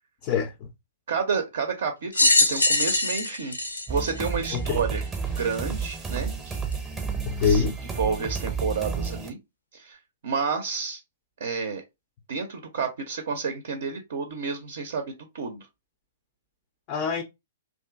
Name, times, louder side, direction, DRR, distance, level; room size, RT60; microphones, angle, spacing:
voice 1, 0.2-0.7 4.5-4.8 7.3-7.8 16.9-17.2, left 6 dB, 35° left, 0.4 m, -25 dB
voice 2, 1.1-3.6 3.9-5.0 5.4-6.6 7.4-7.6 8.0-9.4 9.7-11.0 11.4-11.8 12.3-15.7, right 5 dB, 55° right, 0.4 m, -30 dB
sound 1, 2.1-4.8 5.5-5.6 6.7-6.8, left 2 dB, 85° left, 0.6 m, -22 dB
sound 2, 3.9-9.3, right 5 dB, 10° right, 0.6 m, -31 dB
2.5 x 2.4 x 2.3 m
figure-of-eight pair, 115°, 0 cm